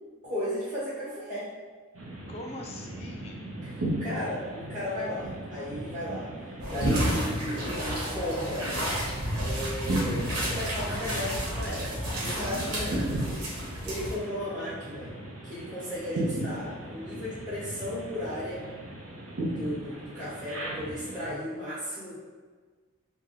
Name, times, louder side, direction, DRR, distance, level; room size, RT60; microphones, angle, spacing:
voice 1, 0.2-1.5 3.6-6.3 6.7-8.7 9.4-15.1 15.4-18.6 19.3-22.2, equal, 35° right, -12 dB, 1.4 m, -35 dB
sound 1, 1.9-21.3, right 1 dB, 65° right, 0.9 m, -36 dB
voice 2, 2.3-3.4 12.4-12.6, left 2 dB, 30° left, 1 dB, 0.4 m, -42 dB
sound 2, 6.6-14.2, equal, 90° right, 1.3 m, -32 dB
3.5 x 2.2 x 3.7 m, 1.5 s
head